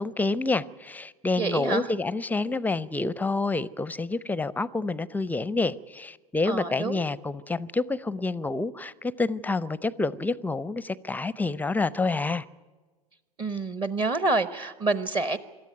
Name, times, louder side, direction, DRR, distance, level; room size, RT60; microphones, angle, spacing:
voice 1, 0.0-12.4, left 3 dB, 10° left, 0.6 m, -28 dB
voice 2, 1.4-1.9 6.5-7.0 13.4-15.4, right 3 dB, 25° right, 0.9 m, -27 dB
27.0 x 13.0 x 9.2 m
figure-of-eight pair, 85°, 19 cm